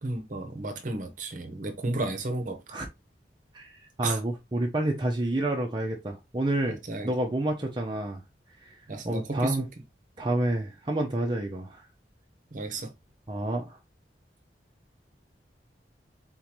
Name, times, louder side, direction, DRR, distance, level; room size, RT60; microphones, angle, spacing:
voice 1, 0.0-2.8 4.0-4.2 6.9-7.1 8.9-9.7 12.5-12.9, right 2 dB, 45° right, 0.9 m, -33 dB
voice 2, 4.0-6.8 7.0-8.2 8.6-8.8 9.0-9.7 10.2-11.8 13.3-13.8, right 1 dB, 25° right, 0.6 m, -29 dB
4.0 x 3.7 x 3.0 m
head